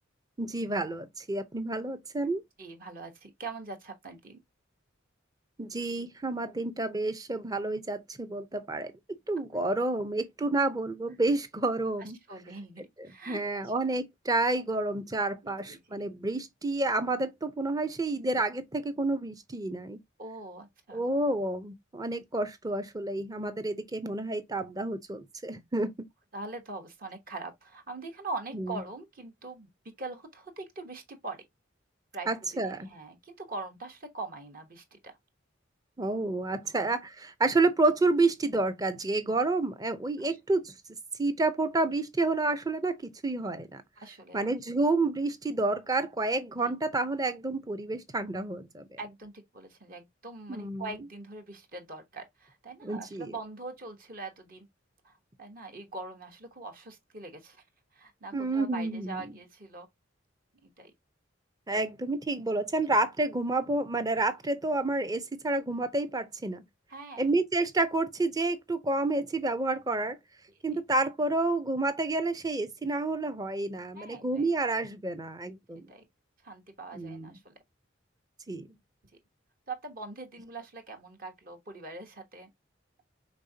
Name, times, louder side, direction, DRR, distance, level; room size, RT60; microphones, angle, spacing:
voice 1, 0.4-2.4 5.6-8.9 9.3-12.2 13.0-20.0 20.9-25.9 28.5-28.8 32.3-32.9 36.0-40.7 41.2-43.0 43.2-43.8 44.3-49.0 50.5-50.9 52.8-53.3 58.3-59.3 61.7-66.6 67.2-70.2 70.6-75.9 76.9-77.3 78.5-78.7, right 2 dB, 20° right, 0.6 m, -29 dB
voice 2, 2.6-4.4 12.0-13.7 15.4-16.0 20.2-21.0 26.3-29.7 30.0-31.4 32.1-32.3 32.7-35.2 36.6-36.8 44.0-44.5 46.6-46.8 49.0-54.7 55.0-57.6 57.9-59.9 60.6-60.9 66.9-67.3 73.9-74.5 75.9-76.0 76.4-77.5 79.7-82.5, right 3 dB, 45° right, 1.1 m, -42 dB
5.3 x 3.5 x 2.7 m
head